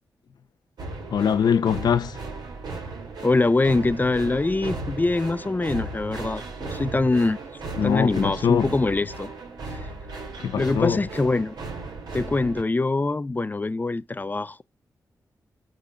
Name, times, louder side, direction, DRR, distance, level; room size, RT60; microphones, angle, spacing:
sound 1, 0.8-12.6, right 3 dB, 80° right, 2.0 m, -36 dB
voice 1, 1.1-2.2 7.8-8.7 10.4-11.0, left 7 dB, 80° left, 0.7 m, -22 dB
voice 2, 3.2-7.4 7.8-9.3 10.5-11.5 12.1-14.6, left 3 dB, 25° left, 0.5 m, -24 dB
5.4 x 3.8 x 5.0 m
cardioid pair, 55°, 7 cm